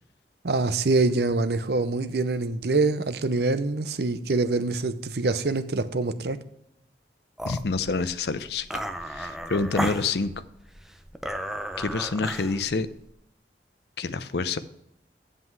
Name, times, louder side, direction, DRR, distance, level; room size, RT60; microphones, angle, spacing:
voice 1, 0.4-6.4, right 3 dB, 60° right, 0.7 m, -25 dB
voice 2, 7.4-8.8 9.1-10.3 11.8-12.9 14.0-14.6, left 4 dB, 65° left, 0.6 m, -27 dB
sound 1, 7.4-13.1, equal, ahead, 0.5 m, -35 dB
8.3 x 7.7 x 4.6 m
head